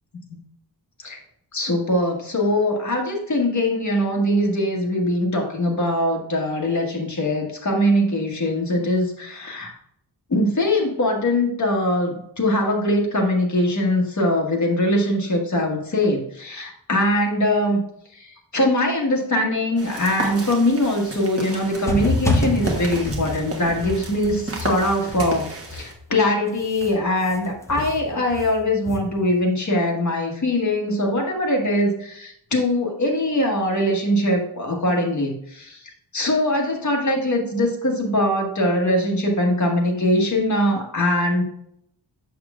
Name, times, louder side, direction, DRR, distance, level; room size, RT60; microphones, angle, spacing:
voice 1, 1.5-9.7 10.3-17.8 18.1-35.8 36.1-41.4, left 1 dB, 40° left, 0 dB, 1.5 m, -22 dB
sound 1, 19.8-25.9, right 2 dB, 30° right, 1.3 m, -33 dB
sound 2, 21.9-26.1 26.5-29.4, left 1 dB, 5° left, 0.8 m, -28 dB
6.9 x 6.4 x 2.4 m, 0.72 s
wide cardioid pair, 125°, 43 cm